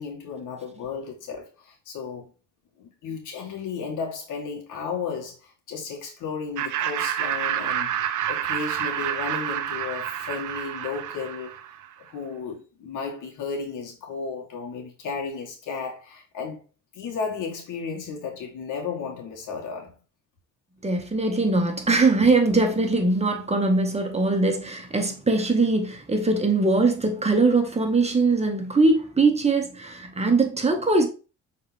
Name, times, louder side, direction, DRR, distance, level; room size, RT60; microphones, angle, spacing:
voice 1, 0.0-2.3 2.8-8.0 8.3-11.6 12.1-16.6 16.9-20.0, left 5 dB, 85° left, 2.3 m, -34 dB
Laughter, 6.6-11.9, right 10 dB, 80° right, 0.8 m, -28 dB
voice 2, 20.8-31.1, right 3 dB, 20° right, 1.7 m, -21 dB
6.4 x 4.5 x 3.5 m
cardioid pair, 90°, 30 cm